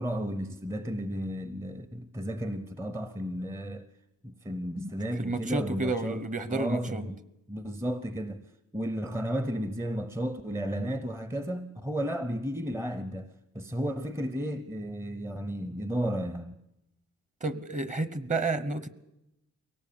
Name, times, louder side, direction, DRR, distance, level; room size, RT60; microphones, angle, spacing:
voice 1, 0.0-3.9 4.2-6.2 6.5-7.1 7.5-8.4 8.7-13.3 13.5-16.6, equal, 10° right, 0.7 m, -33 dB
voice 2, 5.2-7.0 17.4-18.9, right 2 dB, 25° right, 1.0 m, -30 dB
23.0 x 18.0 x 8.6 m
wide cardioid pair, 140°, 31 cm